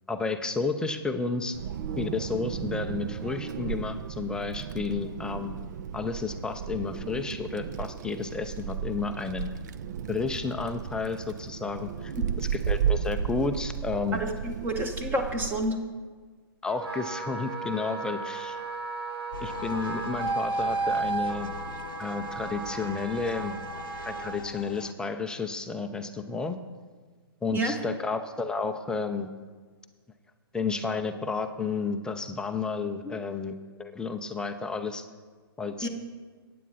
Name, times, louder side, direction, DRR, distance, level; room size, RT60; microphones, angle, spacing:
voice 1, 0.1-1.6 2.0-5.6 5.9-9.5 10.1-14.2 16.6-18.6 19.4-21.5 22.0-23.6 24.1-26.6 27.4-29.3 30.5-33.5 33.8-35.1 35.6-35.9, left 4 dB, 5° left, 6 dB, 0.5 m, -31 dB
Wind, 1.5-15.7, right 8 dB, 45° right, 0.6 m, -34 dB
voice 2, 14.1-15.8 27.5-27.7 33.0-33.1 35.8-35.9, right 1 dB, 15° right, 5 dB, 1.4 m, -29 dB
Wind instrument woodwind instrument, 16.7-24.4, right 3 dB, 85° right, 1.3 m, -33 dB
sound 1, 19.3-24.9, left 7 dB, 55° left, 0.7 m, -42 dB
15.5 x 9.3 x 4.1 m, 1.5 s
figure-of-eight pair, 125°, 13 cm